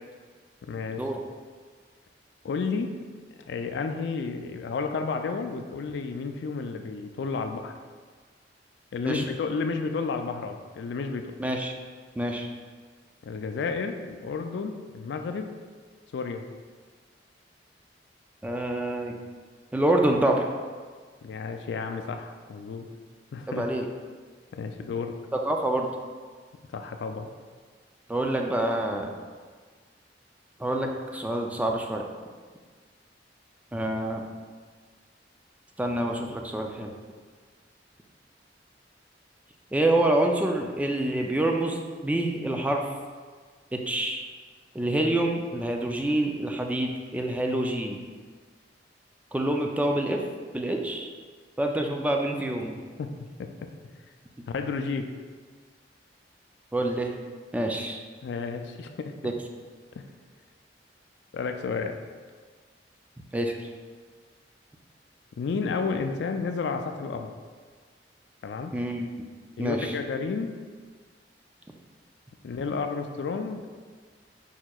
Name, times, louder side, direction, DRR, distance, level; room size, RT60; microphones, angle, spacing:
voice 1, 0.7-1.0 2.4-2.9 3.5-7.7 8.9-11.3 13.2-15.5 16.1-16.5 21.2-22.9 23.3-23.7 24.5-25.1 26.7-27.3 53.0-53.1 53.4-53.5 54.5-55.1 58.2-59.1 60.0-60.1 61.3-62.0 65.4-67.3 68.4-68.7 69.6-70.5 72.4-73.6, left 4 dB, 70° left, 6 dB, 0.3 m, -31 dB
voice 2, 11.4-11.7 12.2-12.5 18.4-19.2 19.7-20.5 23.5-23.9 25.3-25.9 28.1-29.1 30.6-32.1 33.7-34.2 35.8-36.9 39.7-42.8 43.7-44.3 44.7-48.0 49.3-50.2 50.5-51.1 51.6-52.8 56.7-57.2 57.5-58.1 59.2-59.3 63.3-63.7 68.7-69.1 69.6-70.0, right 1 dB, 10° right, 2 dB, 0.3 m, -27 dB
4.9 x 4.4 x 2.3 m, 1.5 s
head